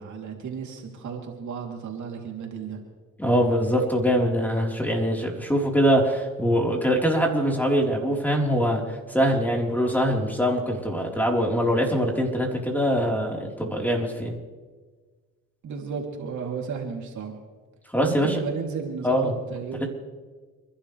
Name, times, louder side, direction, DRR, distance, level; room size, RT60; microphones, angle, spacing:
voice 1, 0.0-2.8 15.6-17.3 18.0-19.9, right 6 dB, 70° right, 1 dB, 3.3 m, -33 dB
voice 2, 3.2-14.4 17.9-18.3 19.0-19.3 19.8-19.9, equal, 5° left, 0 dB, 4.3 m, -23 dB
29.5 x 12.0 x 3.4 m, 1.4 s
supercardioid pair, 65°, 31 cm